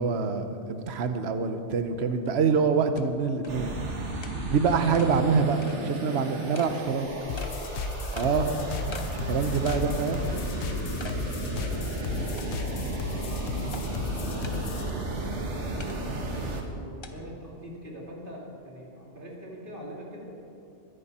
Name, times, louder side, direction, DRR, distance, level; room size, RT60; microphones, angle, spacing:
voice 1, 0.0-3.7 4.5-7.1 8.1-8.5 9.3-10.3, right 5 dB, 65° right, 8 dB, 1.1 m, -25 dB
sound 1, 2.3-2.4 3.0-3.1 3.4-3.5 4.2-4.4 4.9-5.1 5.6-5.8 6.5-6.7 7.4-7.5 8.2-8.3 8.9-9.1 9.7-9.9 10.3-10.4 11.0-11.2 11.6-11.7 12.4-12.8 13.7-13.8 14.4-14.6 15.8-16.0 17.0-17.1, left 3 dB, 25° left, 0.8 m, -42 dB
sound 2, 3.5-16.6, right 2 dB, 80° right, 1.8 m, -33 dB
sound 3, 7.3-14.9, left 7 dB, 75° left, 1.0 m, -36 dB
voice 2, 8.1-11.2 11.5-12.5 13.4-16.0 16.3-20.3, equal, 45° right, -3 dB, 2.9 m, -43 dB
22.0 x 10.5 x 4.3 m, 2.7 s
omnidirectional pair, 1.2 m